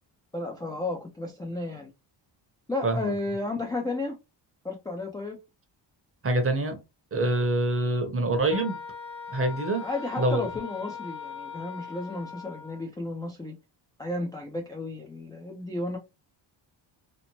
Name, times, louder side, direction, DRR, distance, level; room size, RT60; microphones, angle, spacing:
voice 1, 0.3-1.9 2.7-4.2 4.6-5.4 9.8-13.6 14.0-16.0, left 2 dB, 10° left, 0.4 m, -33 dB
voice 2, 2.8-3.1 6.2-6.8 7.1-8.8 9.3-9.9 10.2-10.4, right 2 dB, 30° right, 0.7 m, -25 dB
Wind instrument woodwind instrument, 8.5-12.9, left 6 dB, 80° left, 1.2 m, -40 dB
2.9 x 2.0 x 2.7 m
cardioid pair, 105°, 47 cm